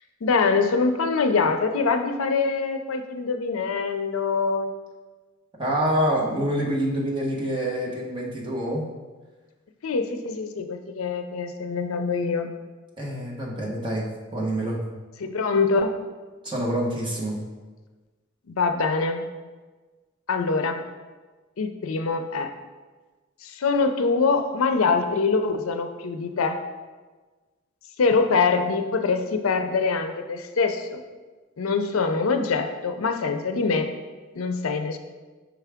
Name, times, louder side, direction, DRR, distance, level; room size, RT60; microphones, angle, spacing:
voice 1, 0.2-4.7 9.8-12.5 15.2-15.9 18.5-19.3 20.3-20.8 21.6-22.5 23.4-26.6 28.0-31.0 31.6-33.9 34.4-35.0, left 4 dB, 70° left, 7 dB, 0.5 m, -24 dB
voice 2, 5.6-8.8 13.0-14.1 14.3-14.8 16.4-17.4, right 1 dB, 25° right, -3 dB, 1.1 m, -26 dB
6.1 x 4.7 x 3.5 m, 1.3 s
head